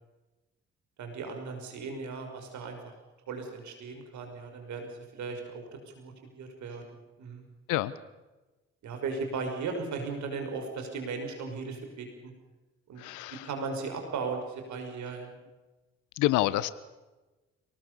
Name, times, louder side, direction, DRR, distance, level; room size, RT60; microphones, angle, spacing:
voice 1, 1.0-2.9 3.3-5.6 6.0-6.8 7.2-7.4 8.8-12.3 12.9-13.0 13.3-15.3, right 4 dB, 65° right, 5 dB, 5.6 m, -37 dB
voice 2, 13.0-13.5 16.2-16.7, left 16 dB, 75° left, 17 dB, 1.3 m, -27 dB
27.5 x 19.0 x 6.8 m, 1.1 s
hypercardioid pair, 45°, 31 cm